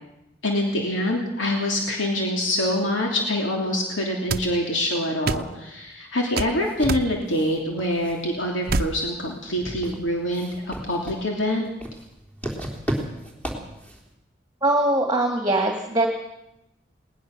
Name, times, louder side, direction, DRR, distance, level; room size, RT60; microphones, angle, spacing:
voice 1, 0.4-11.7, left 1 dB, 85° left, 0 dB, 3.0 m, -25 dB
sound 1, 4.3-4.5 5.3-5.5 6.4-6.5 6.9-7.1 8.7-8.9, right 3 dB, 50° right, 0.8 m, -25 dB
sound 2, 6.5-14.1, equal, 10° left, 3.5 m, -36 dB
voice 2, 14.6-16.1, right 1 dB, 20° right, 2 dB, 2.0 m, -21 dB
20.0 x 19.0 x 6.7 m, 0.89 s
head